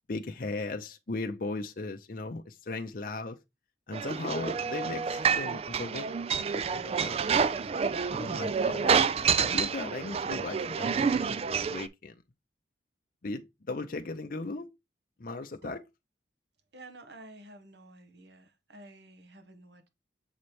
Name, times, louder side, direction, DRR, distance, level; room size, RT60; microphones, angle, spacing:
voice 1, 0.1-3.4 3.9-6.1 6.4-7.5 8.1-11.3 11.7-12.2 13.2-14.7 15.2-15.8, left 3 dB, 50° left, 0.6 m, -37 dB
sound 1, 3.9-11.9, right 6 dB, 35° right, 0.3 m, -28 dB
voice 2, 16.7-19.9, right 2 dB, 65° right, 1.2 m, -50 dB
7.2 x 3.2 x 4.2 m
head